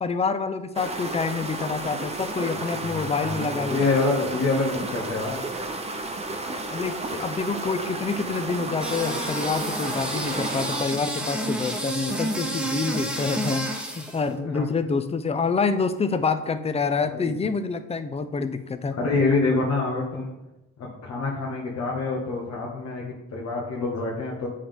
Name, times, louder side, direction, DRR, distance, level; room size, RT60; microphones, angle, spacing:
voice 1, 0.0-3.9 6.7-13.7 14.0-19.0, left 4 dB, 20° left, 10 dB, 0.5 m, -27 dB
sound 1, 0.7-10.8, right 2 dB, 20° right, 0.7 m, -32 dB
voice 2, 2.6-5.5 14.2-14.6 17.1-17.4 19.0-20.3 20.8-24.5, left 3 dB, 65° left, -3 dB, 1.3 m, -27 dB
sound 2, 8.8-14.2, right 1 dB, 5° right, 1.0 m, -30 dB
8.4 x 3.5 x 3.7 m, 0.94 s
cardioid pair, 90°, 30 cm